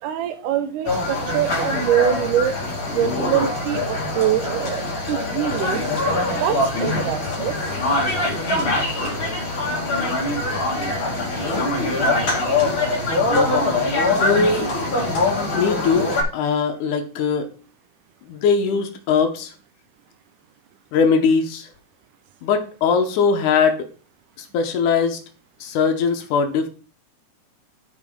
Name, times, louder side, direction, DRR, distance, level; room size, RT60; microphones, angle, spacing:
voice 1, 0.0-2.5 2.9-5.8 6.4-7.5, right 11 dB, 80° right, 11 dB, 2.0 m, -24 dB
sound 1, 0.9-16.2, left 2 dB, 45° left, 2.2 m, -23 dB
voice 2, 14.2-14.7 15.5-17.5 18.3-19.5 20.9-21.7 22.4-23.9 24.4-25.2 25.6-26.7, left 5 dB, 70° left, 6 dB, 2.3 m, -20 dB
10.5 x 5.1 x 3.6 m, 0.40 s
omnidirectional pair, 3.9 m